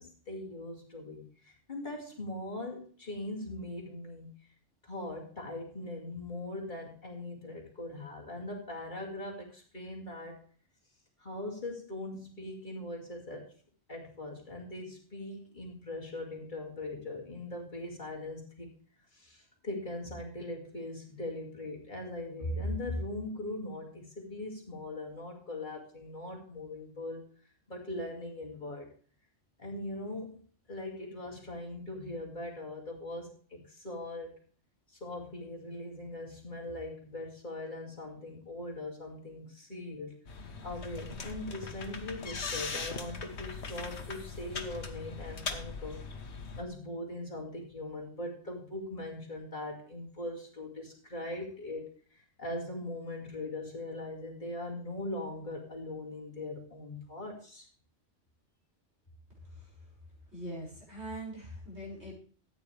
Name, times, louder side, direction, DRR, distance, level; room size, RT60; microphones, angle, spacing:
voice 1, 0.0-4.4 4.8-10.4 11.2-13.5 13.9-18.7 19.1-27.3 27.7-28.9 29.6-30.4 30.7-34.4 34.9-40.2 40.6-46.0 46.5-57.7, left 1 dB, 40° left, -1 dB, 2.7 m, -40 dB
sound 1, 40.3-46.6, left 4 dB, 65° left, 1.5 m, -40 dB
voice 2, 59.4-59.7 60.3-62.1, right 1 dB, 65° right, -3 dB, 6.3 m, -42 dB
14.0 x 9.4 x 3.4 m, 0.43 s
omnidirectional pair, 1.2 m